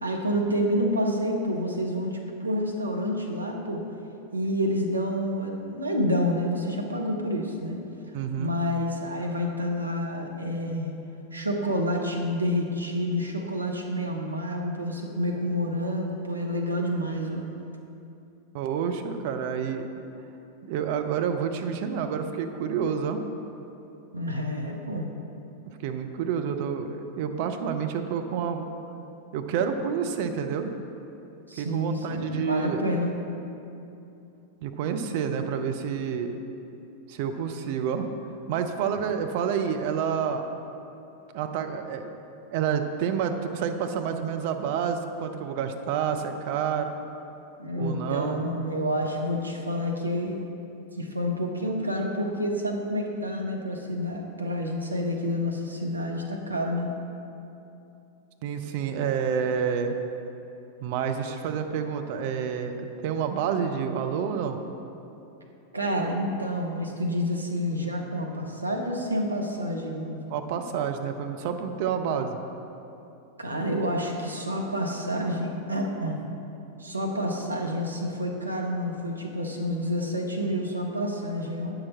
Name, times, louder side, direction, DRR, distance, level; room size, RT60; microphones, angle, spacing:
voice 1, 0.0-3.8 4.3-7.8 8.4-10.9 11.3-17.4 24.1-25.1 31.5-33.1 47.6-50.4 51.0-56.9 65.7-70.2 73.4-76.2 76.8-81.7, equal, 80° right, 1 dB, 0.8 m, -28 dB
voice 2, 8.1-8.5 18.5-19.9 20.7-23.2 25.8-28.7 29.3-30.7 31.6-32.9 34.6-36.4 37.1-38.1 38.5-40.5 41.3-42.1 42.5-46.9 47.7-48.4 58.4-60.0 60.8-64.6 70.3-72.4, right 7 dB, 50° right, 6 dB, 0.6 m, -29 dB
8.8 x 6.0 x 4.2 m, 2.8 s
figure-of-eight pair, 90°, 0 cm